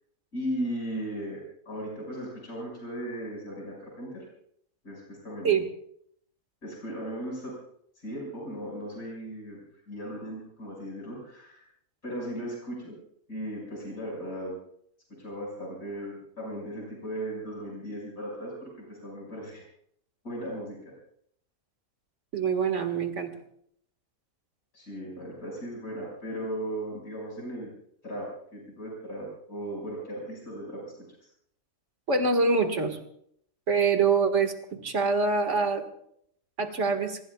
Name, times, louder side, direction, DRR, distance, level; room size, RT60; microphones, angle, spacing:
voice 1, 0.3-4.2 4.8-5.6 6.6-7.6 8.0-9.6 9.9-11.6 12.0-13.0 13.3-14.6 15.1-19.6 20.2-20.8 24.7-27.7 28.0-31.0, right 1 dB, 90° left, -3 dB, 6.5 m, -37 dB
voice 2, 22.3-23.3 32.1-33.0 33.7-35.8 36.6-37.2, right 4 dB, 60° right, 5 dB, 2.2 m, -25 dB
27.0 x 21.0 x 2.4 m, 0.69 s
omnidirectional pair, 1.4 m